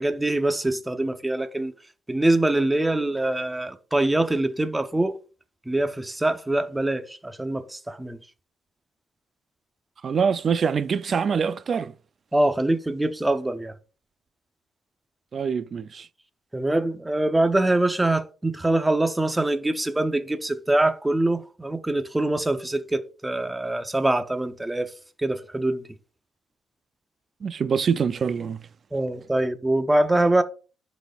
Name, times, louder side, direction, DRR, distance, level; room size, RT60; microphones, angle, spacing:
voice 1, 0.0-1.7 2.1-5.2 5.7-8.2 12.3-13.7 16.5-24.9 25.2-25.8 28.9-30.4, right 1 dB, 10° right, 0.8 m, -24 dB
voice 2, 10.0-11.9 15.3-16.1 27.4-28.7, right 6 dB, 45° right, 0.4 m, -25 dB
11.5 x 4.2 x 2.4 m
cardioid pair, 80°, 0 cm